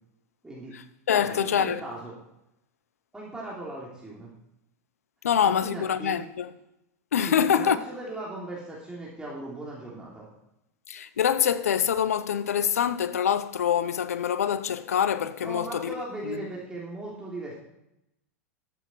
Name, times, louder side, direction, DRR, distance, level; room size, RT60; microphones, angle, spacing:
voice 1, 0.4-0.7 1.1-2.1 3.1-4.3 5.4-6.2 7.3-10.3 15.4-17.6, right 2 dB, 10° right, 3.2 m, -38 dB
voice 2, 1.1-1.8 5.2-6.5 7.1-7.8 10.9-15.9 16.2-16.4, left 8 dB, 85° left, 0.7 m, -25 dB
13.0 x 8.2 x 4.5 m
hypercardioid pair, 105°, 8 cm